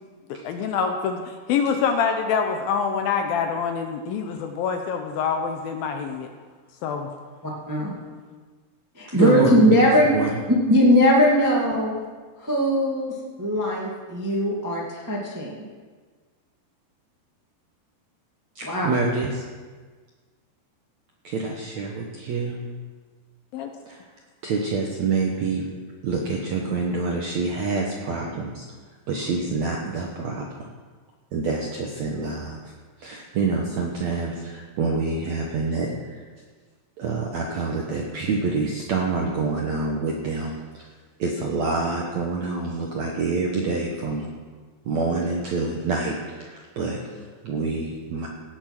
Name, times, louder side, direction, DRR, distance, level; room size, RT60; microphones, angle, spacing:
voice 1, 0.4-6.3 6.8-7.1 23.5-23.7, left 6 dB, 75° left, 5 dB, 2.3 m, -25 dB
voice 2, 7.4-7.9 8.9-10.1 10.7-11.9 12.4-15.5 18.6-18.9, equal, 20° right, -3 dB, 0.5 m, -20 dB
voice 3, 9.1-9.8 10.0-10.4 18.6-19.4 21.2-22.6 23.9-24.0 24.4-25.6 26.0-28.6 29.1-30.5 31.3-32.6 33.0-36.2 37.0-40.9 41.2-44.3 44.9-48.3, right 4 dB, 70° right, -1 dB, 1.7 m, -27 dB
17.5 x 7.2 x 6.0 m, 1.5 s
omnidirectional pair, 4.8 m